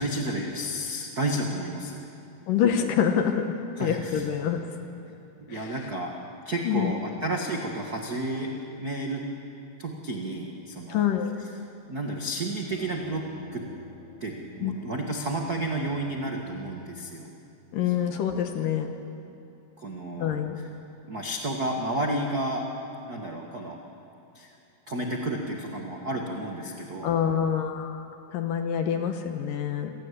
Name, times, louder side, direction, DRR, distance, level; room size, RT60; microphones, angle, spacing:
voice 1, 0.0-2.1 3.8-4.3 5.1-5.2 5.5-6.1 6.4-9.2 9.8-11.1 11.9-13.6 14.2-17.3 17.9-18.2 19.8-20.7 21.1-22.6 23.1-23.8 24.3-24.5 24.9-27.1, right 1 dB, 85° right, 1 dB, 0.8 m, -31 dB
voice 2, 2.5-3.4 3.8-4.6 5.5-5.7 6.7-6.9 10.9-11.3 14.6-14.8 17.7-18.9 20.2-20.6 27.0-28.1 28.3-29.9, left 8 dB, 70° left, 5 dB, 2.4 m, -26 dB
sound 1, 12.7-18.1, left 3 dB, 35° left, 3.8 m, -47 dB
27.0 x 17.5 x 8.4 m, 2.7 s
omnidirectional pair, 4.8 m